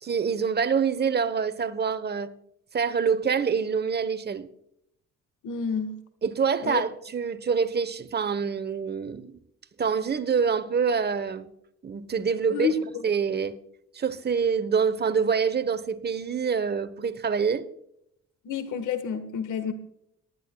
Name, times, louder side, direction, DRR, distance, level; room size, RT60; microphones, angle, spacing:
voice 1, 0.0-2.3 2.7-4.5 6.2-9.3 9.8-11.5 11.8-12.7 13.0-13.5 13.9-17.6, right 6 dB, 35° right, 1.0 m, -26 dB
voice 2, 5.4-6.0 6.6-6.8 12.5-12.8 18.4-19.7, left 7 dB, 80° left, 1.5 m, -29 dB
19.5 x 10.5 x 2.3 m
cardioid pair, 90°, 30 cm